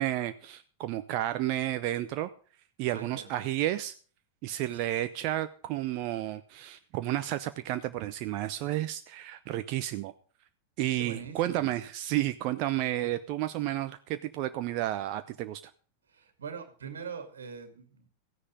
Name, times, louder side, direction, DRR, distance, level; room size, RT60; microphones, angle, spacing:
voice 1, 0.0-2.3 2.8-3.9 4.4-10.1 10.8-15.6, right 14 dB, 45° right, 10 dB, 0.8 m, -31 dB
voice 2, 2.8-3.3 11.0-11.7 16.1-18.1, right 6 dB, 65° right, 8 dB, 2.4 m, -42 dB
15.0 x 9.9 x 5.2 m, 0.40 s
figure-of-eight pair, 90°, 0 cm